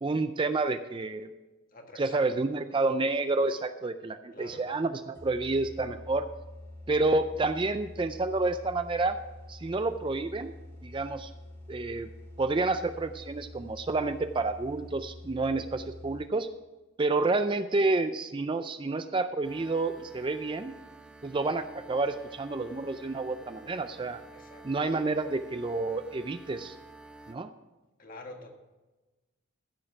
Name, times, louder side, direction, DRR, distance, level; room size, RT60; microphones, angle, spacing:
voice 1, 0.0-1.3 2.0-6.3 6.9-9.2 9.5-10.6 10.8-11.3 11.7-12.1 12.4-16.5 17.0-20.8 21.2-24.2 24.6-26.8 27.3-27.5, right 3 dB, 25° right, 10 dB, 0.4 m, -29 dB
voice 2, 1.7-2.5 4.3-4.7 24.3-24.7 28.0-28.5, left 2 dB, 40° left, 3 dB, 1.7 m, -47 dB
sound 1, 5.1-16.5, left 1 dB, 15° left, 2.0 m, -47 dB
sound 2, 19.4-27.3, right 2 dB, 5° right, 0.7 m, -50 dB
15.0 x 6.6 x 5.9 m, 1.1 s
head